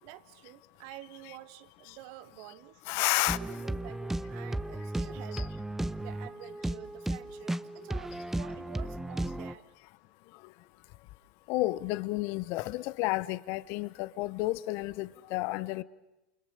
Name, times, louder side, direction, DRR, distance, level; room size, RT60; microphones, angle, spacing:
voice 1, 0.0-2.8 3.2-5.5 6.0-9.7, right 15 dB, 60° right, 1.7 m, -49 dB
voice 2, 2.9-3.4 5.3-5.5 11.5-15.8, left 19 dB, 55° left, 1.1 m, -31 dB
sound 1, 3.3-9.5, right 1 dB, 5° right, 1.0 m, -35 dB
29.0 x 29.0 x 6.7 m
hypercardioid pair, 90°, 5 cm